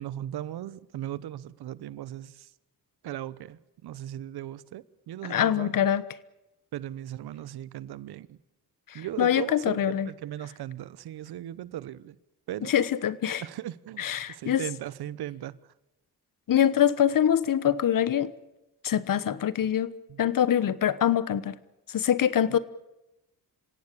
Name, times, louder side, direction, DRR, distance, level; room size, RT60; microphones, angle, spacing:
voice 1, 0.0-2.5 3.0-5.8 6.7-8.4 8.9-12.2 12.5-12.7 13.4-15.6 19.2-19.3 20.1-20.2 22.5-22.6, right 12 dB, 85° right, 1.0 m, -38 dB
voice 2, 5.2-6.0 8.9-10.1 12.6-13.4 14.0-14.6 16.5-18.3 18.8-19.9 20.2-21.6 21.9-22.6, left 10 dB, 60° left, 1.2 m, -24 dB
27.0 x 17.0 x 8.4 m
cardioid pair, 100°, 37 cm